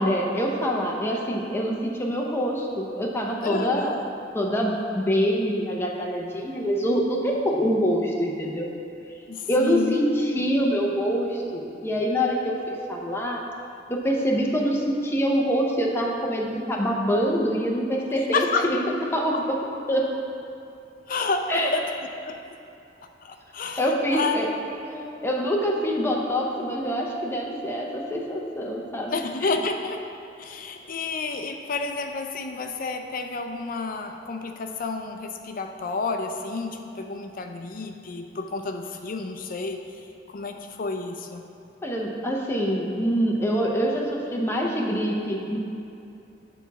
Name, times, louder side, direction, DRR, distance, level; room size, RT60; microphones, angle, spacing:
voice 1, 0.0-4.1 4.3-8.7 9.5-13.4 13.9-18.8 19.1-19.6 19.9-20.1 21.5-21.7 23.8-24.5 24.8-29.2 41.8-45.6, equal, 15° left, -1 dB, 0.7 m, -25 dB
voice 2, 3.4-4.0 9.3-10.0 18.3-18.7 19.3-19.4 21.1-21.8 22.2-22.4 23.2-24.4 25.0-25.1 29.1-30.0 30.4-39.8 40.3-41.4, left 4 dB, 50° left, 5 dB, 0.5 m, -30 dB
7.0 x 4.1 x 5.8 m, 2.8 s
head